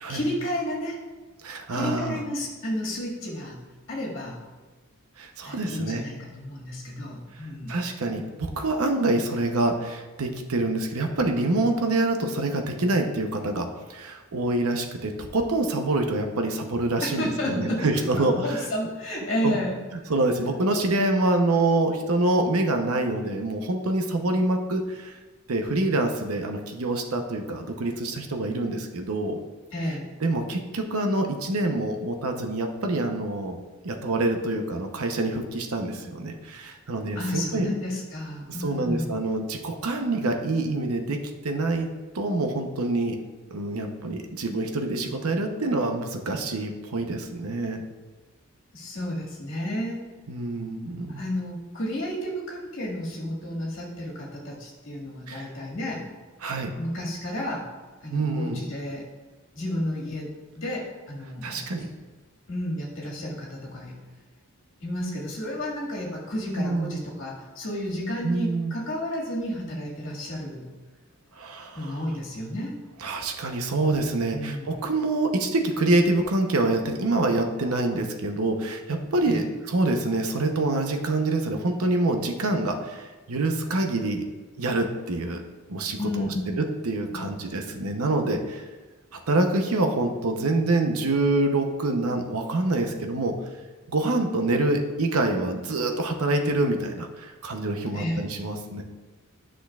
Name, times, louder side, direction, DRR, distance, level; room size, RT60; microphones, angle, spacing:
voice 1, 0.1-1.0 1.7-3.6 3.9-4.4 5.4-7.7 17.0-17.9 18.4-19.8 29.7-30.1 37.2-39.2 48.7-50.0 51.1-56.0 56.7-57.7 58.0-59.1 59.5-60.3 60.5-61.8 62.5-64.0 64.8-70.7 71.7-72.8 74.3-74.8 79.2-79.5 86.0-86.6 87.1-87.4 97.9-98.2, left 1 dB, 60° left, -4 dB, 1.9 m, -31 dB
voice 2, 1.4-2.2 5.2-6.1 7.7-18.7 19.4-19.5 20.1-25.2 25.5-29.4 30.2-33.6 33.8-37.7 38.6-41.9 42.1-43.2 43.5-47.8 50.3-51.2 55.3-55.5 56.4-56.7 58.1-58.6 61.4-61.9 66.6-66.9 68.2-68.7 71.4-72.0 73.0-84.2 84.6-85.4 85.7-86.3 86.5-88.6 89.1-93.4 93.9-98.8, right 2 dB, 90° right, 4 dB, 0.8 m, -26 dB
10.5 x 6.3 x 2.4 m, 1.3 s
head